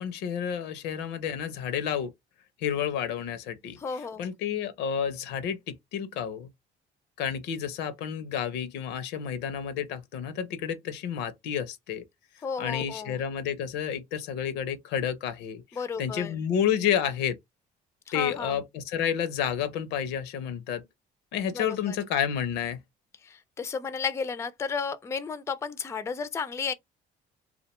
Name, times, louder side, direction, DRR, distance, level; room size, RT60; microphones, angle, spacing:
voice 1, 0.0-2.1 2.6-3.8 4.2-6.5 7.2-12.0 12.6-15.6 16.0-17.4 18.1-20.8 21.3-22.8, left 8 dB, 85° left, 0.5 m, -30 dB
voice 2, 3.8-4.3 12.4-13.2 15.7-16.4 18.1-18.6 21.5-22.0 23.2-26.7, left 5 dB, 15° left, 0.3 m, -33 dB
2.4 x 2.1 x 2.9 m
cardioid pair, 110°, 17 cm